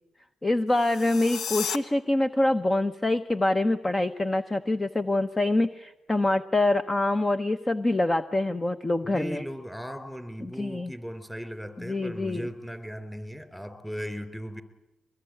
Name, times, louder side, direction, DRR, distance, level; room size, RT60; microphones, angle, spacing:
voice 1, 0.4-9.4 10.4-10.9 11.8-12.5, left 2 dB, 20° left, 10 dB, 0.9 m, -25 dB
sound 1, 0.7-1.8, left 7 dB, 70° left, 1.3 m, -33 dB
voice 2, 9.0-14.6, equal, ahead, 12 dB, 3.6 m, -37 dB
23.5 x 21.5 x 9.8 m, 0.98 s
cardioid pair, 90°, 0 cm